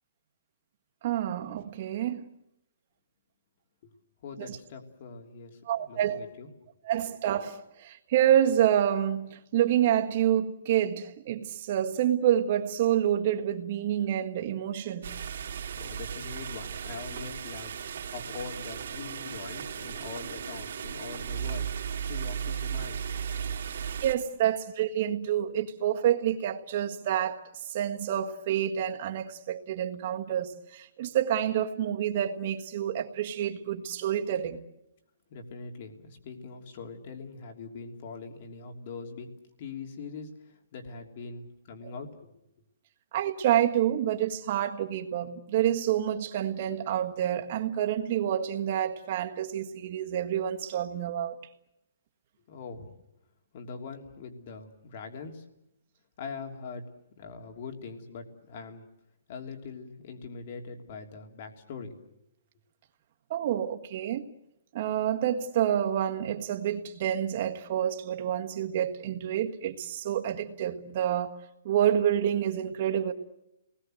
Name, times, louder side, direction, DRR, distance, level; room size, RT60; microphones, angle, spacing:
voice 1, 1.0-2.2 4.4-4.6 5.7-6.2 6.8-15.1 24.0-34.6 43.1-51.4 63.3-64.2 64.7-73.1, right 10 dB, 40° right, 1.6 m, -28 dB
voice 2, 4.2-6.5 15.8-21.7 22.1-23.1 35.3-39.3 39.6-42.3 52.5-52.9 53.5-55.5 56.2-56.9 57.1-58.8 59.3-61.9, left 4 dB, 40° left, 3.2 m, -42 dB
sound 1, 15.0-24.2, right 8 dB, 60° right, 2.8 m, -36 dB
28.5 x 20.0 x 7.9 m
hypercardioid pair, 165°, 0 cm